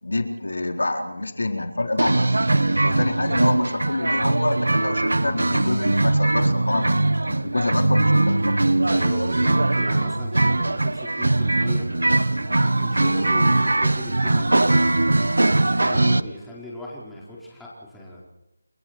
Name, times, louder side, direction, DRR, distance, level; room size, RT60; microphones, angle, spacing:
voice 1, 0.0-2.3 2.8-8.5, left 2 dB, 85° left, 4 dB, 4.1 m, -27 dB
sound 1, 2.0-16.2, right 2 dB, 85° right, 1.4 m, -21 dB
voice 2, 8.9-15.2 15.6-18.3, left 1 dB, 5° left, -7 dB, 4.9 m, -38 dB
29.5 x 23.0 x 4.6 m, 0.89 s
figure-of-eight pair, 170°, 0 cm